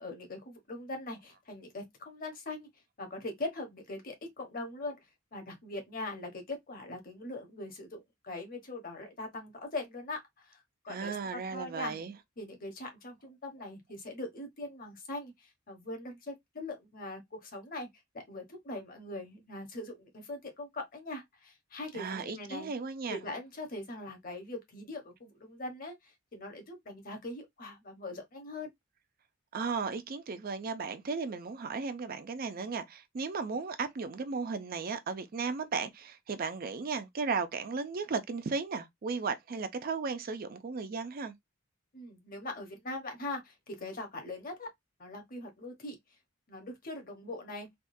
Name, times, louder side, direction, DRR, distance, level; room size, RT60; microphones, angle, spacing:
voice 1, 0.0-2.7 3.0-5.0 5.3-12.0 12.4-17.9 18.3-22.7 23.1-28.7 41.9-44.7 45.0-46.0 46.5-47.7, left 2 dB, 45° left, 1.0 m, -41 dB
voice 2, 10.9-12.1 21.9-23.2 29.5-41.3, right 4 dB, 45° right, 0.4 m, -35 dB
3.5 x 2.3 x 2.6 m
head